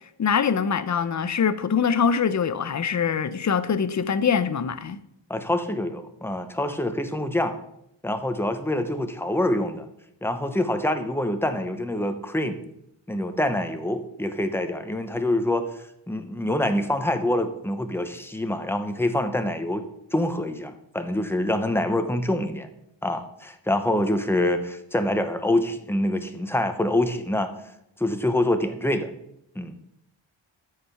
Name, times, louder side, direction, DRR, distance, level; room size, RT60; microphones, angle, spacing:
voice 1, 0.2-5.0, left 6 dB, 40° left, 0.7 m, -23 dB
voice 2, 5.3-7.6 8.0-9.9 10.2-12.6 13.1-19.8 20.1-22.7 23.0-27.5 28.0-29.1 29.5-29.8, left 1 dB, 5° left, 0.9 m, -26 dB
13.5 x 5.0 x 5.7 m
wide cardioid pair, 140°, 44 cm